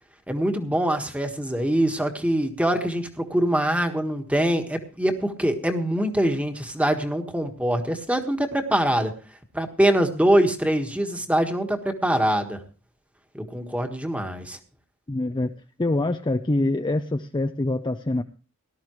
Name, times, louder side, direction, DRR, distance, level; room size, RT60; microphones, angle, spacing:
voice 1, 0.3-9.1 9.5-12.6 13.3-14.6, right 1 dB, 5° right, 6 dB, 1.5 m, -24 dB
voice 2, 15.1-15.5 15.8-18.2, left 2 dB, 20° left, 7 dB, 0.5 m, -25 dB
18.5 x 12.5 x 3.1 m, 0.34 s
head